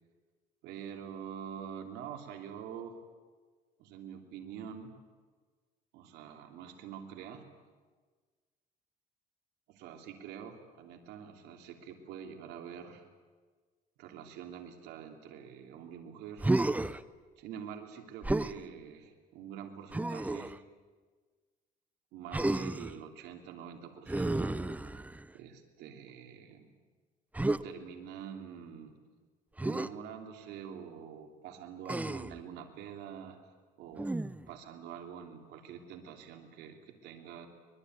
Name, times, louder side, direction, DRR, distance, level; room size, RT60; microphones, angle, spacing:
voice 1, 0.6-3.0 3.8-4.9 5.9-7.4 9.7-13.0 14.0-16.5 17.4-20.6 22.1-24.6 25.3-26.7 27.6-29.0 29.6-33.4 33.8-34.1 34.5-37.5, right 8 dB, 90° right, 4 dB, 3.1 m, -46 dB
Human voice, 16.4-17.0 18.2-18.6 19.9-20.6 22.3-23.0 24.1-25.3 27.3-27.6 29.6-29.9 31.9-32.4 34.0-34.5, right 2 dB, 10° right, 0.7 m, -32 dB
24.0 x 21.0 x 9.4 m, 1.4 s
cardioid pair, 110°, 17 cm